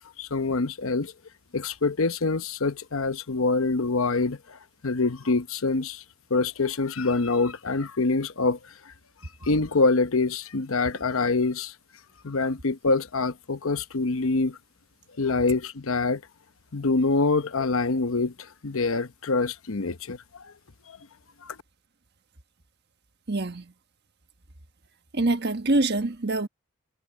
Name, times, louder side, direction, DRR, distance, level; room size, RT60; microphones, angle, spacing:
voice 1, 0.2-1.1 1.5-4.6 4.8-6.0 6.3-8.6 9.4-11.7 12.2-14.6 15.2-16.2 16.7-18.3 18.6-20.2 20.9-21.0 21.4-21.6, left 3 dB, 70° left, 0.9 m, -25 dB
voice 2, 23.3-23.6 25.1-26.5, right 2 dB, 50° right, 1.4 m, -25 dB
head